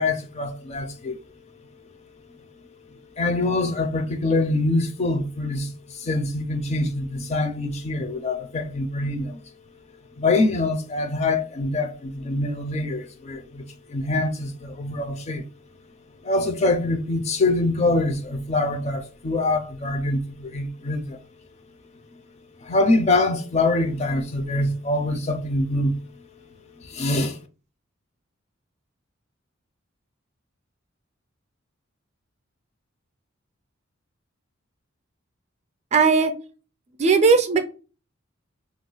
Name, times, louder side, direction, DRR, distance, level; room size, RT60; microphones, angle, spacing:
voice 1, 0.0-9.6 9.9-15.4 16.1-21.2 22.1-22.2 22.6-26.0 26.8-27.4, left 2 dB, 30° left, 0.4 m, -25 dB
voice 2, 35.9-36.3 37.0-37.6, right 5 dB, 35° right, 0.4 m, -17 dB
2.4 x 2.1 x 3.8 m
head